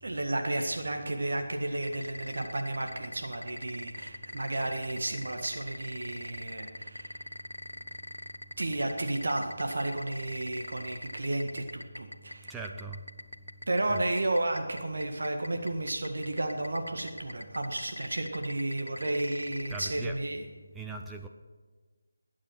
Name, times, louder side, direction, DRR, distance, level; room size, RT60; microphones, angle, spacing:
voice 1, 0.0-7.2 8.6-12.5 13.7-20.4, right 2 dB, 60° right, 4 dB, 1.8 m, -32 dB
sound 1, 1.8-19.9, left 1 dB, 90° left, 0.8 m, -40 dB
voice 2, 12.5-13.0 13.9-14.0 19.7-20.2 20.8-21.3, right 4 dB, 5° right, 2 dB, 0.6 m, -40 dB
20.5 x 8.7 x 6.0 m, 1.4 s
figure-of-eight pair, 160°, 0 cm